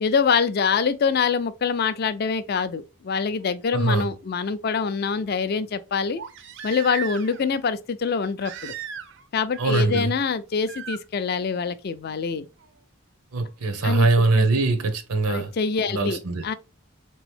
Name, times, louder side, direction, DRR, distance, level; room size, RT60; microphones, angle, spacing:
voice 1, 0.0-6.2 6.6-8.7 9.3-12.5 13.8-14.1 14.3-14.5 15.3-16.5, left 5 dB, 45° left, 0.3 m, -25 dB
Crying sobbing, 3.4-3.5 6.2-7.5 8.4-9.3 9.5-10.0 10.7-11.0 12.6-12.7, right 8 dB, 50° right, 0.5 m, -37 dB
voice 2, 3.7-4.1 9.6-10.1 13.3-15.5 15.9-16.4, right 3 dB, 85° right, 0.8 m, -22 dB
3.7 x 3.0 x 3.2 m
head